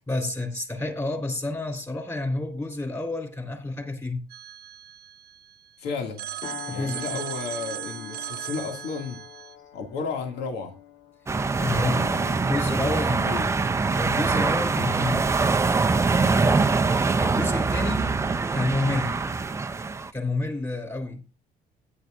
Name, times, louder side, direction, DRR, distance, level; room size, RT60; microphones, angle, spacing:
voice 1, 0.1-4.2 6.7-7.1 11.6-13.2 13.9-15.3 16.3-16.7 17.2-18.2 18.5-19.2 20.1-21.2, left 2 dB, 20° left, 3.8 m, -29 dB
Telephone, 4.3-5.7 6.2-9.5, right 11 dB, 70° right, 0.9 m, -37 dB
voice 2, 5.8-6.3 6.7-9.2 9.7-10.7 11.7-12.5 12.8-13.5, left 5 dB, 80° left, 2.4 m, -33 dB
sound 1, 6.4-15.3 15.7-16.0, left 7 dB, 40° left, 1.8 m, -46 dB
sound 2, 11.3-20.1, right 4 dB, 15° right, 0.5 m, -23 dB
15.0 x 10.0 x 2.6 m
cardioid pair, 110°, 17 cm